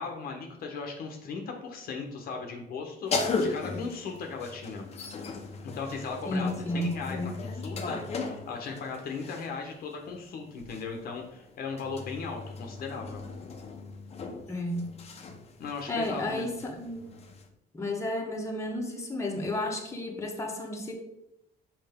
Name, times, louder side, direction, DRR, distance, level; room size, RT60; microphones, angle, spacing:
voice 1, 0.0-4.9 5.6-13.3 15.6-16.5, left 4 dB, 60° left, 3 dB, 1.1 m, -37 dB
sound 1, 3.1-9.6 10.6-17.5, left 3 dB, 40° left, 0.9 m, -37 dB
voice 2, 6.3-7.3 14.5-14.8 15.9-17.1 17.7-20.9, left 1 dB, 15° left, 0 dB, 1.2 m, -32 dB
5.7 x 4.9 x 3.6 m, 0.83 s
cardioid pair, 110°, 17 cm